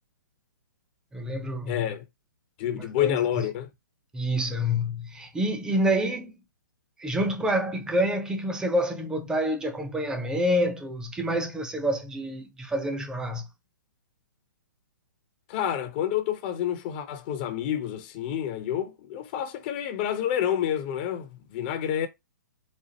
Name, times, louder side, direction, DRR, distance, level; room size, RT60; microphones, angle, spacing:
voice 1, 1.1-1.9 2.8-3.2 4.1-6.4 7.0-13.5, equal, 5° right, 0.6 m, -27 dB
voice 2, 1.7-2.1 2.6-3.7 15.5-22.1, left 10 dB, 30° left, 0.6 m, -28 dB
4.3 x 2.4 x 2.8 m
figure-of-eight pair, 125°, 11 cm